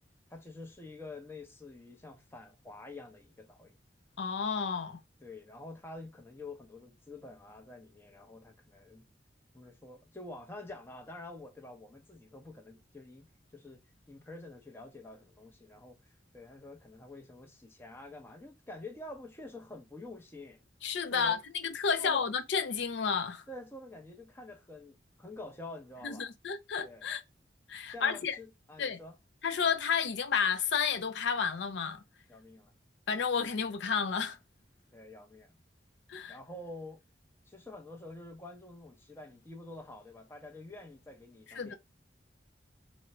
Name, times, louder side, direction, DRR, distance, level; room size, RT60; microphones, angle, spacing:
voice 1, 0.3-3.8 5.2-9.1 9.5-20.7 21.1-21.4 22.0-22.2 23.5-26.3 26.8-27.1 27.9-29.2 32.3-32.7 34.9-35.6 36.3-37.0 37.5-41.8, left 2 dB, 15° left, 0.6 m, -48 dB
voice 2, 4.2-5.0 20.8-23.4 26.0-27.2 27.7-28.4 28.8-29.0 29.4-32.0 33.1-34.4 36.1-36.4 41.5-41.7, left 6 dB, 80° left, 0.5 m, -31 dB
3.7 x 2.1 x 4.2 m
head